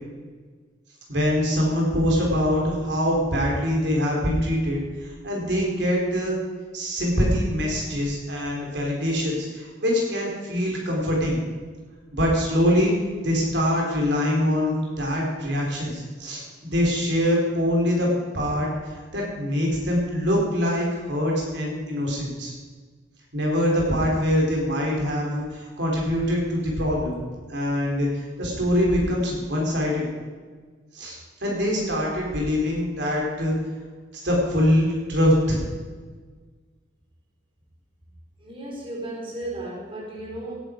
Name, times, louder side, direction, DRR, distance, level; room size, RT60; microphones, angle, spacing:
voice 1, 1.1-6.4 6.7-11.4 12.1-12.9 13.2-18.7 19.1-22.5 23.3-27.2 27.5-30.1 30.9-33.5 34.1-35.6, equal, 65° right, -2 dB, 4.0 m, -24 dB
voice 2, 38.4-40.6, right 1 dB, 30° right, -3 dB, 4.2 m, -34 dB
18.0 x 11.0 x 5.2 m, 1.5 s
head